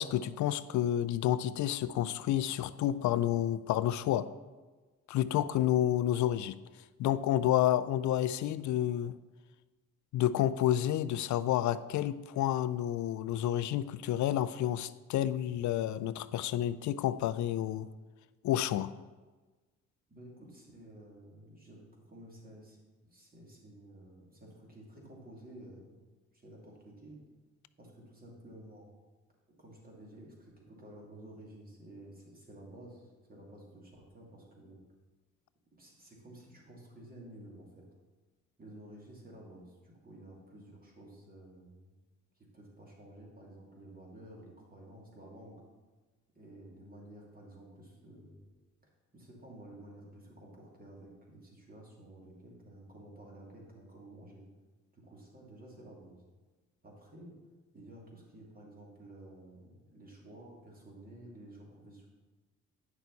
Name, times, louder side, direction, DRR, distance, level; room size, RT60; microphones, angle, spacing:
voice 1, 0.0-4.3 5.1-6.5 7.0-9.1 10.1-17.9 18.4-18.9, left 12 dB, 70° left, 15 dB, 0.5 m, -30 dB
voice 2, 20.1-26.0 26.3-27.2 27.8-28.9 29.6-34.8 35.7-37.8 38.6-41.9 42.4-45.6 46.3-48.4 49.1-54.4 54.9-56.2 56.8-57.4 57.7-62.1, right 1 dB, 30° right, -2 dB, 2.7 m, -52 dB
9.7 x 6.3 x 4.1 m, 1.3 s
cardioid pair, 90°, 30 cm